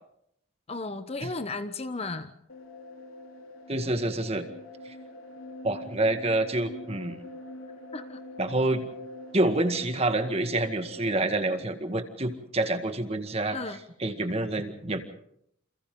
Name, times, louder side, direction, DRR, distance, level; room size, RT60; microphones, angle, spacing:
voice 1, 0.7-2.3 7.9-8.2 13.5-13.8, left 3 dB, 30° left, 10 dB, 1.0 m, -34 dB
sound 1, 2.5-11.4, left 1 dB, 80° left, 3.7 m, -44 dB
voice 2, 3.7-4.5 5.6-7.2 8.4-8.9 9.3-13.6 14.0-15.0, right 2 dB, 30° right, 7 dB, 1.9 m, -27 dB
29.0 x 28.0 x 3.9 m, 0.73 s
head